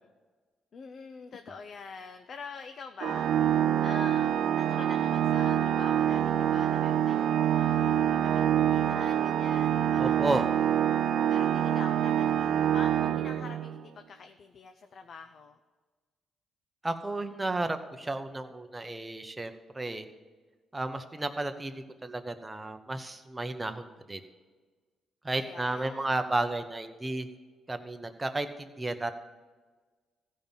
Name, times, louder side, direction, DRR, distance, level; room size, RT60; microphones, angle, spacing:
voice 1, 0.7-10.4 11.3-15.6 25.3-26.1, left 5 dB, 55° left, 7 dB, 0.6 m, -46 dB
Organ, 3.0-13.8, right 10 dB, 70° right, 0.4 m, -26 dB
voice 2, 10.0-10.5 16.8-20.1 20.7-24.2 25.2-27.3 27.7-29.1, right 2 dB, 15° right, 7 dB, 1.0 m, -33 dB
15.0 x 5.4 x 7.3 m, 1.4 s
cardioid pair, 90°, 0 cm